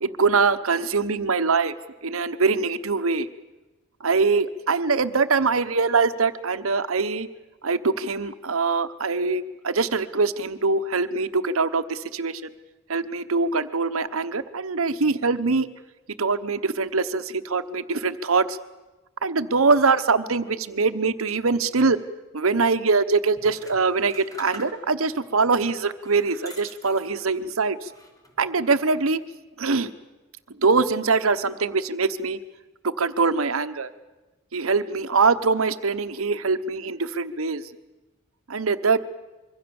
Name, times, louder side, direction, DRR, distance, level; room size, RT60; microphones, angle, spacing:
voice 1, 0.0-1.7 2.0-3.3 4.0-7.3 7.6-12.4 12.9-15.7 16.2-18.6 19.2-22.0 22.3-27.8 28.4-29.2 29.6-29.9 30.6-32.4 32.8-33.9 34.5-37.6 38.5-39.0, right 4 dB, 80° right, 11 dB, 1.1 m, -23 dB
sound 1, 23.4-25.1 25.7-27.5 27.9-28.5, equal, 15° left, 3.4 m, -45 dB
25.5 x 23.5 x 7.1 m, 1.1 s
head